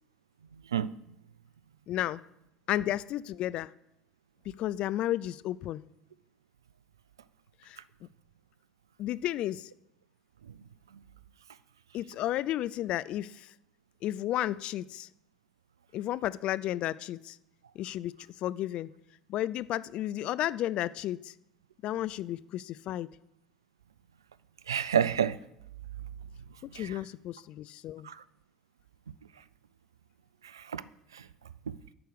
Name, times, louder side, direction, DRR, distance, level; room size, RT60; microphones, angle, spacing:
voice 1, 1.9-2.2 2.7-3.7 4.6-5.8 7.6-7.8 9.0-9.7 11.9-13.5 14.0-15.1 15.9-17.4 17.8-18.1 18.4-18.9 19.3-21.3 21.8-23.1 26.6-28.1, left 13 dB, 50° left, 0.4 m, -32 dB
voice 2, 24.7-25.4 26.7-27.0 28.0-28.2 30.4-30.8 31.1-31.3 31.7-31.8, right 8 dB, 75° right, 0.3 m, -29 dB
11.0 x 4.7 x 8.0 m
figure-of-eight pair, 65°, 2 cm